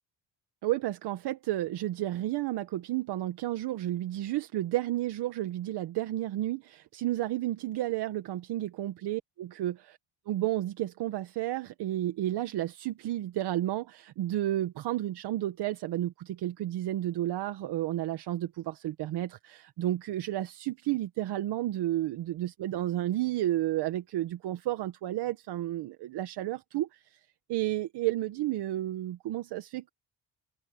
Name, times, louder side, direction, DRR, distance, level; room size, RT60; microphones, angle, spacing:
voice 1, 0.6-10.0 10.3-27.2 27.5-29.9, right 14 dB, 90° right, 1.1 m, -32 dB
cardioid pair, 175°, 39 cm